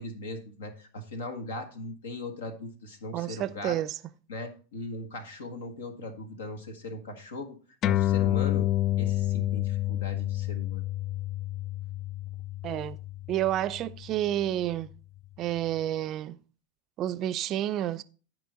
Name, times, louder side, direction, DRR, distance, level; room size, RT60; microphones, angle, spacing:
voice 1, 0.0-3.8 4.3-7.6 7.8-8.7 9.0-10.8, left 2 dB, 75° left, 1.5 m, -39 dB
voice 2, 3.1-4.0 12.6-13.0 13.3-14.9 15.4-16.4 17.0-18.0, right 12 dB, 40° right, 0.5 m, -30 dB
sound 1, 7.8-14.7, left 14 dB, 35° left, 0.3 m, -29 dB
12.5 x 5.0 x 4.0 m
hypercardioid pair, 95°, 0 cm